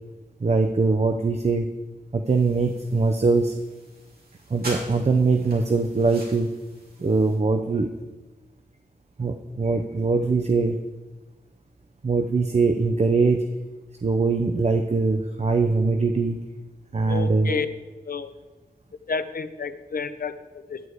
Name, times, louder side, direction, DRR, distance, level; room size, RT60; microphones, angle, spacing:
voice 1, 0.4-1.7 2.1-3.5 4.5-6.6 7.0-7.9 9.2-10.8 12.0-13.5 14.0-16.5 16.9-17.6, right 3 dB, 45° right, 6 dB, 0.6 m, -22 dB
sound 1, 2.2-7.4, right 1 dB, 70° right, 3.3 m, -43 dB
voice 2, 17.0-17.7 18.0-18.3 19.1-20.8, left 5 dB, 65° left, 11 dB, 0.7 m, -30 dB
11.0 x 4.7 x 8.0 m, 1.2 s
wide cardioid pair, 80°, 16 cm